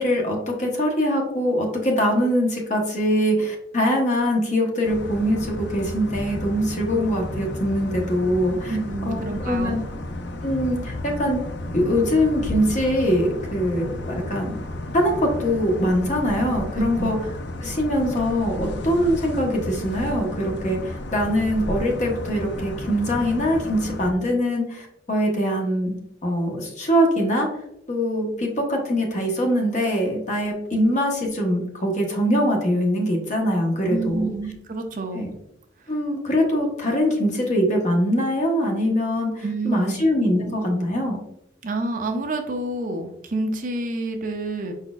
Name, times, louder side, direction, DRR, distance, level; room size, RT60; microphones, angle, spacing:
voice 1, 0.0-8.8 9.0-9.8 10.4-11.4 11.7-14.6 14.9-17.2 17.6-25.9 26.2-27.5 27.9-34.3 35.1-35.3 35.9-41.2, equal, 40° left, 0 dB, 1.0 m, -23 dB
sound 1, 4.8-24.1, left 1 dB, 70° left, 0.5 m, -33 dB
voice 2, 8.7-9.8 16.8-17.1 33.9-35.3 39.4-40.0 41.6-44.7, right 2 dB, 45° right, 4 dB, 0.5 m, -28 dB
4.8 x 4.1 x 2.3 m, 0.78 s
head